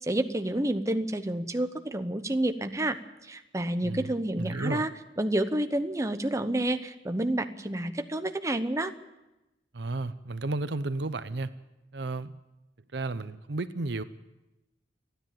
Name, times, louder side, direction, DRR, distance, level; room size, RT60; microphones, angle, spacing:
voice 1, 0.0-3.0 3.2-4.9 5.2-8.9, right 1 dB, 15° right, 8 dB, 0.9 m, -29 dB
voice 2, 4.4-4.8 9.7-11.5 11.9-12.4 12.9-14.0, right 2 dB, 60° right, 13 dB, 0.7 m, -33 dB
28.5 x 10.5 x 9.0 m, 1.0 s
head